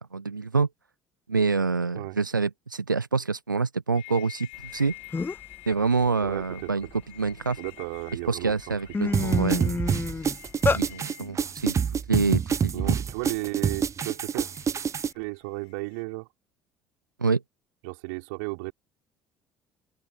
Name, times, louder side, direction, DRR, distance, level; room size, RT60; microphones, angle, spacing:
voice 1, 0.1-0.7 1.3-4.9 5.7-6.9 7.2-7.6 8.3-9.8 10.7-11.7 12.1-12.9 17.2-17.4, right 4 dB, 85° right, 0.6 m, -26 dB
sound 1, 3.9-16.0, left 26 dB, 60° left, 7.7 m, -49 dB
sound 2, 4.8-4.9 5.1-5.5 6.0-7.6 8.1-8.3 8.6-10.8, left 4 dB, 20° left, 1.5 m, -29 dB
voice 2, 6.2-6.9 7.6-8.8 9.0-9.3 12.7-14.5 15.1-16.3 17.8-18.7, right 31 dB, 65° right, 4.7 m, -34 dB
sound 3, 9.1-15.1, right 7 dB, 30° right, 0.6 m, -26 dB
open air
figure-of-eight pair, 55°, 10 cm